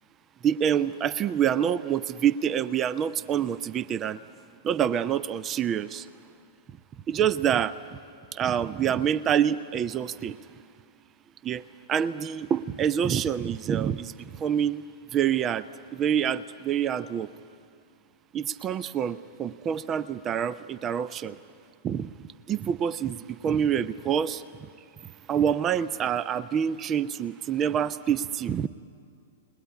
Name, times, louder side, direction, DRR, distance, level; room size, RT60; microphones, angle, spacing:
voice 1, 0.4-4.2 4.6-6.1 7.1-7.8 8.3-10.4 11.4-11.6 11.9-14.8 15.1-15.7 15.9-17.3 18.3-21.4 21.8-24.7 25.3-28.7, right 9 dB, 25° right, 17 dB, 0.7 m, -26 dB
29.0 x 20.5 x 9.8 m, 2.4 s
figure-of-eight pair, 105°, 0 cm